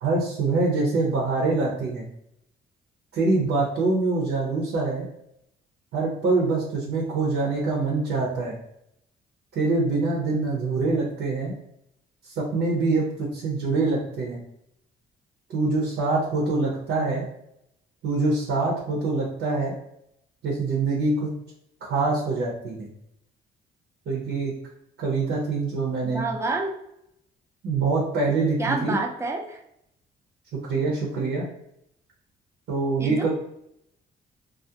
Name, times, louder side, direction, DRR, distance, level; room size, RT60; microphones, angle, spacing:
voice 1, 0.0-2.1 3.1-5.1 5.9-8.6 9.5-11.6 12.3-13.1 13.3-14.4 15.5-17.2 18.0-19.7 20.4-21.3 21.8-22.9 24.1-24.5 25.0-26.2 27.6-29.0 30.7-31.5 32.7-33.3, right 3 dB, 70° right, -3 dB, 0.7 m, -24 dB
voice 2, 26.1-26.7 28.6-29.6 33.0-33.3, right 3 dB, 15° right, 3 dB, 0.4 m, -28 dB
2.4 x 2.0 x 2.7 m, 0.78 s
cardioid pair, 90°, 20 cm